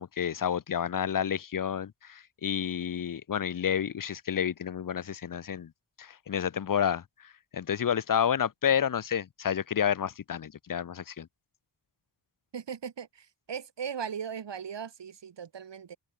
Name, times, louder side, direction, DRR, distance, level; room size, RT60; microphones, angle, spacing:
voice 1, 0.0-5.7 6.0-11.3, left 8 dB, 50° left, 0.8 m, -30 dB
voice 2, 12.5-16.0, right 7 dB, 90° right, 4.3 m, -38 dB
open air
wide cardioid pair, 135°, 42 cm